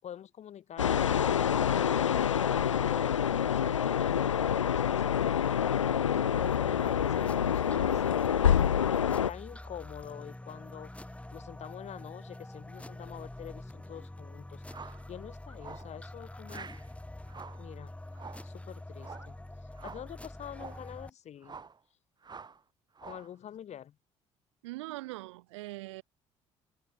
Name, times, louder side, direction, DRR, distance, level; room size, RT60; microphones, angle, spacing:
voice 1, 0.0-5.5 6.0-8.6 9.3-11.0 11.3-16.7 17.6-17.9 18.4-21.6 23.0-24.0, left 10 dB, 45° left, 4.4 m, -46 dB
sound 1, 0.8-9.3, left 8 dB, 80° left, 0.7 m, -27 dB
sound 2, 6.3-21.1, left 1 dB, 10° left, 4.0 m, -46 dB
sound 3, 14.7-15.0 15.6-15.9 16.5-16.9 17.3-17.7 18.1-18.5 19.0-19.3 19.8-20.1 20.5-20.9 21.4-21.8 22.2-22.6 23.0-23.3, right 5 dB, 25° right, 2.1 m, -47 dB
voice 2, 24.6-26.0, right 20 dB, 70° right, 7.3 m, -41 dB
figure-of-eight pair, 50°, 16 cm